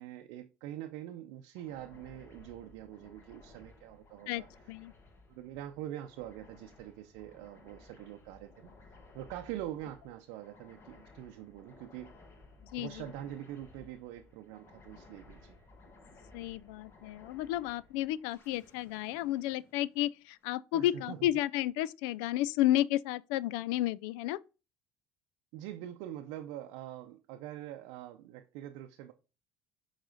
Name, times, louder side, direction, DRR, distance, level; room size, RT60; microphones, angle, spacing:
voice 1, 0.0-4.5 5.3-12.1 12.8-15.6 20.7-21.3 25.5-29.1, right 12 dB, 70° right, 0.6 m, -44 dB
sound 1, 1.5-20.4, left 3 dB, 40° left, 1.7 m, -58 dB
voice 2, 4.3-4.9 12.7-13.0 16.3-24.4, left 14 dB, 75° left, 0.3 m, -32 dB
6.6 x 4.1 x 3.9 m
hypercardioid pair, 70°, 6 cm